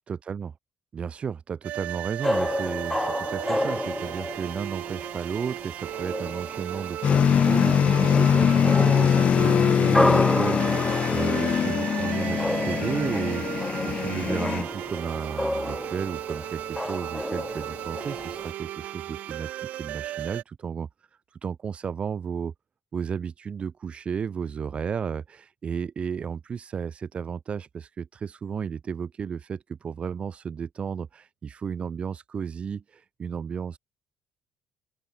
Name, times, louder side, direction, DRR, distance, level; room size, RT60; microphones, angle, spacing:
voice 1, 0.1-0.5 0.9-20.9 21.3-22.5 22.9-33.8, right 6 dB, 40° right, 1.9 m, -33 dB
sound 1, 1.6-20.4, right 14 dB, 65° right, 3.3 m, -36 dB
sound 2, 2.2-18.5, left 1 dB, 5° left, 3.3 m, -31 dB
sound 3, 7.0-14.6, left 8 dB, 45° left, 0.7 m, -22 dB
open air
hypercardioid pair, 50°, 3 cm